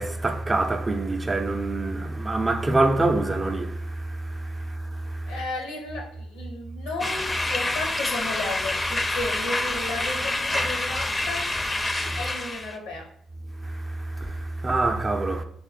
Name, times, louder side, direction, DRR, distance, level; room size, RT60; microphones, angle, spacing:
voice 1, 0.0-5.3 10.5-10.7 12.1-12.2 13.6-15.4, right 2 dB, 25° right, 0.5 m, -26 dB
voice 2, 5.3-11.5 12.1-13.1, left 2 dB, 85° left, 0.8 m, -33 dB
sound 1, 7.0-12.8, left 2 dB, 25° left, 0.5 m, -27 dB
3.1 x 2.6 x 3.9 m
hypercardioid pair, 50°, 0 cm